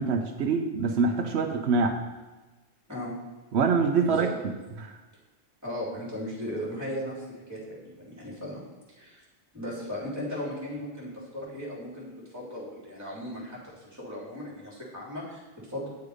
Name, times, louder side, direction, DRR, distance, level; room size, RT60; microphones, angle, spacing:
voice 1, 0.0-2.0 3.5-5.0, right 4 dB, 80° right, 4 dB, 1.0 m, -25 dB
voice 2, 5.6-8.6 9.0-9.2 9.5-15.9, equal, 15° right, -5 dB, 3.3 m, -37 dB
9.5 x 6.7 x 5.0 m, 1.2 s
omnidirectional pair, 1.1 m